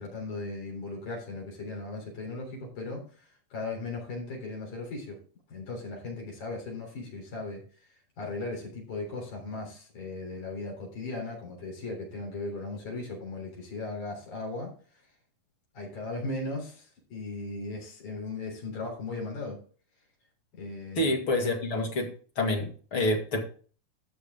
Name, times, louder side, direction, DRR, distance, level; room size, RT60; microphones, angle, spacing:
voice 1, 0.0-5.2 5.5-7.6 7.9-14.7 15.7-19.6 20.5-21.2, left 2 dB, 75° left, -1 dB, 5.1 m, -37 dB
voice 2, 21.0-22.1 22.4-23.4, left 1 dB, 45° left, 2 dB, 2.5 m, -27 dB
13.0 x 7.1 x 3.7 m, 0.41 s
omnidirectional pair, 3.6 m